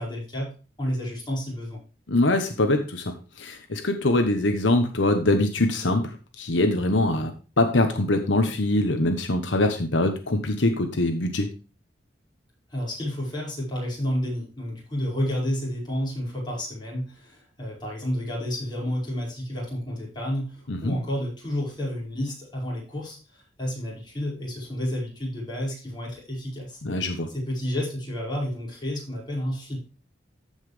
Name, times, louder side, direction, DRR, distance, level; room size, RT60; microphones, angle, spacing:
voice 1, 0.0-1.8 12.7-26.8 27.3-29.8, equal, 25° left, -4 dB, 5.2 m, -30 dB
voice 2, 2.1-7.3 7.6-11.5 20.7-21.0 26.8-27.3, left 2 dB, 85° left, 6 dB, 1.1 m, -23 dB
14.0 x 5.6 x 3.3 m, 0.33 s
head